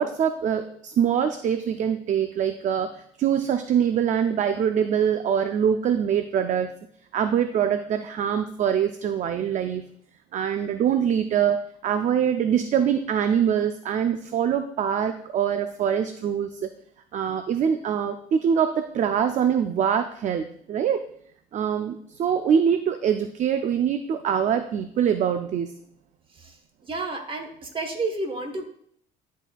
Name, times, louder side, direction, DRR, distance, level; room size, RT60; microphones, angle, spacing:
voice 1, 0.0-6.7 7.1-9.8 10.3-16.7 17.1-21.0 21.5-25.7, right 8 dB, 45° right, 8 dB, 0.4 m, -24 dB
voice 2, 26.8-28.7, right 3 dB, 30° right, 5 dB, 1.1 m, -31 dB
10.5 x 4.1 x 2.3 m, 0.65 s
cardioid pair, 110°, 17 cm